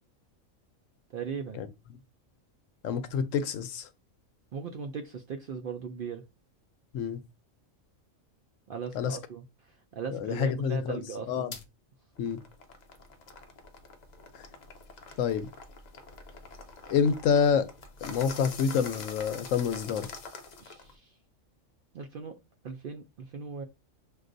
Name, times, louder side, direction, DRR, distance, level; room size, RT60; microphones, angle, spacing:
voice 1, 1.1-1.6 4.5-6.2 8.7-11.5 15.1-15.2 20.6-21.2 21.9-22.3 22.6-23.6, right 5 dB, 65° right, 0.5 m, -39 dB
voice 2, 2.8-3.9 6.9-7.2 8.9-9.2 10.1-11.5 12.2-12.4 15.2-15.5 16.9-17.7 18.0-20.1, left 7 dB, 75° left, 1.0 m, -27 dB
sound 1, 11.5-11.6 12.1-20.9, left 4 dB, 50° left, 0.5 m, -45 dB
6.1 x 2.5 x 2.5 m
omnidirectional pair, 1.4 m